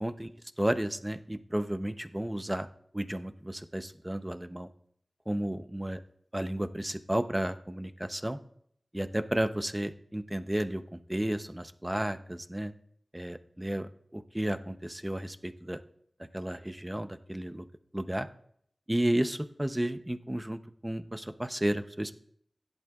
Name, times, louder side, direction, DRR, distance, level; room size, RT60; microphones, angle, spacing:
voice 1, 0.6-2.7 2.9-4.7 5.3-6.0 6.3-8.4 8.9-12.7 13.1-15.8 16.3-17.7 17.9-18.3 18.9-22.1, right 1 dB, 15° right, 10 dB, 0.7 m, -32 dB
16.5 x 10.5 x 2.4 m, 0.67 s
wide cardioid pair, 60°, 0 cm